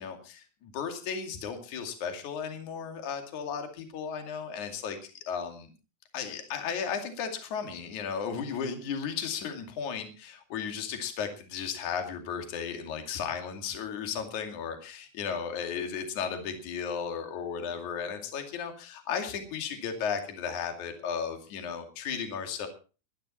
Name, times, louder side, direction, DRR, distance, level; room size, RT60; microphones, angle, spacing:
voice 1, 0.0-5.0 5.3-5.7 6.1-22.7, left 7 dB, 50° left, 5 dB, 3.5 m, -35 dB
21.0 x 11.0 x 4.2 m, 0.35 s
omnidirectional pair, 4.8 m